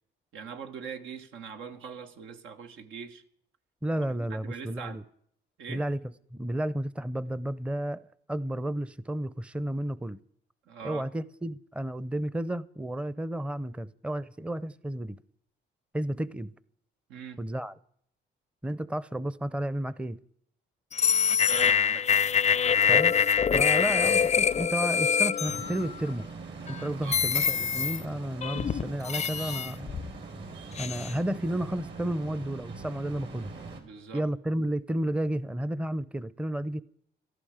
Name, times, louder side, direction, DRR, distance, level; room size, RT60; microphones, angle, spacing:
voice 1, 0.3-3.2 4.3-5.0 5.6-5.8 10.7-11.1 17.1-17.4 21.5-22.3 27.0-27.2 33.8-34.3, right 6 dB, 90° right, 1.7 m, -42 dB
voice 2, 3.8-5.0 5.7-6.0 6.3-8.0 8.3-10.2 10.8-15.2 15.9-16.5 17.4-17.7 18.6-20.2 22.9-23.1 23.5-26.3 26.7-29.9 30.8-33.5 34.1-36.8, right 1 dB, 5° right, 0.6 m, -32 dB
sound 1, 20.9-26.1 26.7-26.8 27.1-28.0 28.4-30.1 30.8-31.1, left 7 dB, 35° left, 0.5 m, -25 dB
sound 2, 25.4-33.8, right 4 dB, 65° right, 4.0 m, -42 dB
17.0 x 14.0 x 5.0 m
cardioid pair, 90°, 20 cm